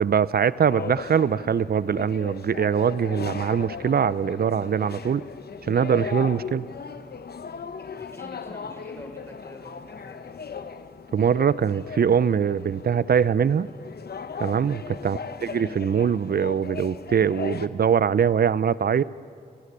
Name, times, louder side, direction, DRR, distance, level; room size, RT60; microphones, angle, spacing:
voice 1, 0.0-5.2 5.7-6.6 11.1-13.7 14.4-19.0, right 7 dB, 65° right, 18 dB, 0.6 m, -22 dB
sound 1, 0.7-17.7, left 5 dB, 70° left, 0.9 m, -38 dB
voice 2, 8.0-10.5 15.0-15.3, equal, 15° left, 2 dB, 5.5 m, -46 dB
29.5 x 11.5 x 9.9 m, 2.4 s
cardioid pair, 45°, 17 cm